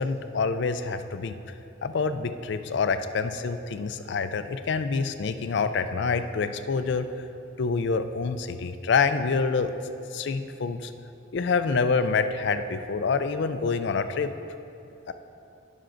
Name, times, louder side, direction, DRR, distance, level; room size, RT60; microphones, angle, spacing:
voice 1, 0.0-1.4 1.8-7.1 7.6-9.7 10.1-10.9 11.3-14.3 15.1-15.2, left 4 dB, 55° left, 10 dB, 0.4 m, -26 dB
17.5 x 6.0 x 2.6 m, 2.8 s
head